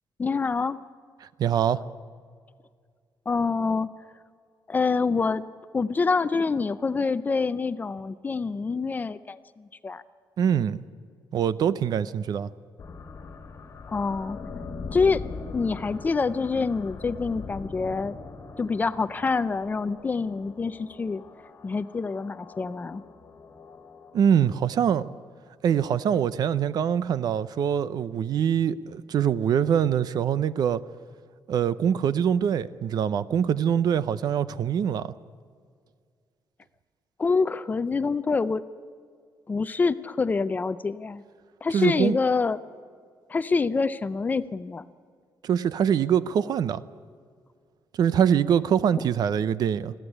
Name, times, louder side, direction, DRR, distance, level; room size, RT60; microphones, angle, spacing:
voice 1, 0.2-0.8 3.3-3.9 4.7-5.4 5.7-10.0 13.9-14.4 14.9-15.2 15.5-18.2 18.6-21.2 21.6-23.0 37.2-38.6 39.5-41.2 41.6-42.6 43.3-44.8, left 4 dB, 20° left, 14 dB, 0.5 m, -26 dB
voice 2, 1.4-1.8 10.4-10.8 11.3-12.5 24.1-25.1 25.6-30.8 31.5-35.1 41.7-42.2 45.4-46.8 48.0-49.9, right 8 dB, 60° right, 16 dB, 0.7 m, -24 dB
sound 1, 12.8-24.7, left 4 dB, 40° left, 1.7 m, -42 dB
21.0 x 15.5 x 9.9 m, 2.1 s
wide cardioid pair, 180°, 8 cm